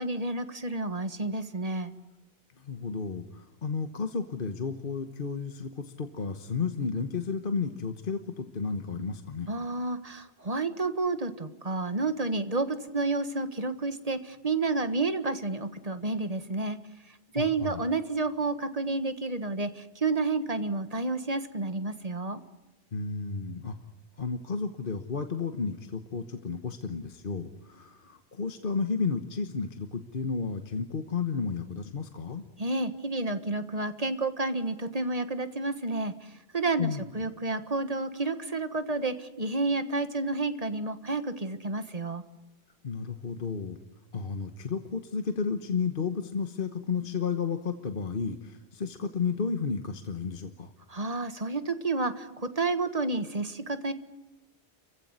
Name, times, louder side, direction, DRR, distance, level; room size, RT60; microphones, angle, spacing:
voice 1, 0.0-1.9 9.5-16.8 17.1-22.4 32.6-42.2 50.9-53.9, right 3 dB, 35° right, 10 dB, 1.5 m, -30 dB
voice 2, 2.6-9.5 17.3-17.8 22.9-23.8 24.2-32.4 36.8-37.0 42.8-43.8 44.1-50.7, left 5 dB, 55° left, 7 dB, 1.4 m, -32 dB
29.5 x 15.5 x 9.7 m, 1.0 s
omnidirectional pair, 1.1 m